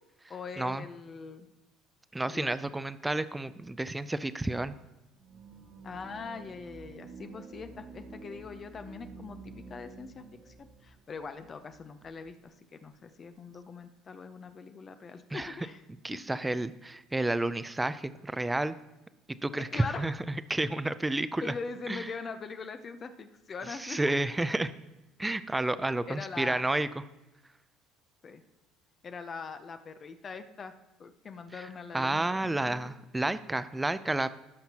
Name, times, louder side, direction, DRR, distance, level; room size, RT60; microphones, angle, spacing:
voice 1, 0.3-1.5 2.3-2.5 5.8-15.8 16.1-16.2 19.6-20.0 21.4-24.0 26.1-26.6 28.2-28.4 29.0-30.7 31.0-32.9, left 5 dB, 35° left, 8 dB, 0.7 m, -42 dB
voice 2, 2.1-4.7 15.3-15.6 16.0-18.7 19.4-21.5 21.9-22.1 23.7-24.7 25.2-26.9 31.6-31.7 31.9-34.3, right 2 dB, 10° right, 14 dB, 0.5 m, -31 dB
sound 1, 5.2-12.4, right 4 dB, 60° right, 1.2 m, -50 dB
17.0 x 5.9 x 2.9 m, 1.0 s
supercardioid pair, 90°, 0 cm